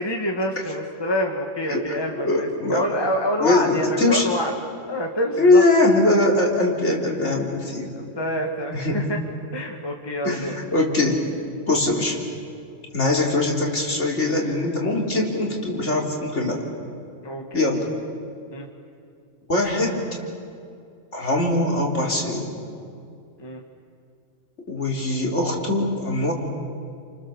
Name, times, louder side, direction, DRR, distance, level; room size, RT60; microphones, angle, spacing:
voice 1, 0.0-4.5 4.9-5.6 8.0-9.2 9.5-10.5 17.2-17.7 18.5-18.6 23.4-23.6, equal, 15° left, 2 dB, 1.9 m, -26 dB
voice 2, 2.2-2.9 3.4-4.3 5.4-7.9 8.7-9.0 10.2-11.2 11.7-12.2 12.9-16.6 17.5-17.9 19.5-20.0 21.1-22.6 24.7-26.3, left 2 dB, 55° left, -1 dB, 4.1 m, -21 dB
30.0 x 27.5 x 7.2 m, 2.4 s
omnidirectional pair, 1.5 m